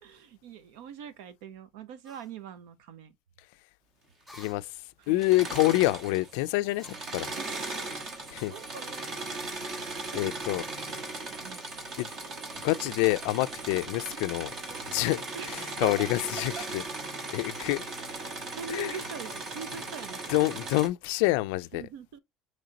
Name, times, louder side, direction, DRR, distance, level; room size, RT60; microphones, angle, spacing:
voice 1, 0.0-3.1 5.0-5.2 7.4-9.0 10.1-10.3 11.3-11.6 14.0-14.2 14.7-15.1 15.3-16.1 16.6-16.7 18.5-20.4 21.7-22.2, right 8 dB, 90° right, 0.7 m, -43 dB
sound 1, 2.0-2.3 4.3-4.6 5.5-6.0 6.8-7.1 7.4-7.6 8.4-8.9 10.2-12.3 14.5-16.5 16.9-18.2 18.9-19.5, left 1 dB, 5° right, 1.8 m, -55 dB
voice 2, 4.3-7.3 8.3-8.5 10.1-10.6 12.0-12.1 12.5-14.5 14.9-16.8 17.3-17.8 18.7-18.9 20.3-21.8, left 19 dB, 90° left, 0.3 m, -27 dB
Engine / Mechanisms, 5.1-6.4 6.7-20.9, right 3 dB, 45° right, 1.2 m, -38 dB
5.1 x 3.2 x 2.8 m
cardioid pair, 150°, 0 cm